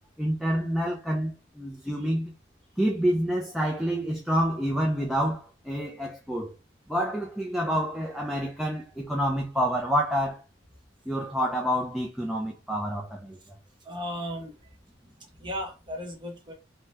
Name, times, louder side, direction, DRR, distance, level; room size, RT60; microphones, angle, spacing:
voice 1, 0.2-2.3 2.8-6.5 6.9-10.4 11.1-13.4, equal, ahead, 0.3 m, -28 dB
voice 2, 13.8-14.5 15.4-16.5, equal, 25° right, 0.9 m, -35 dB
2.8 x 2.1 x 3.3 m
head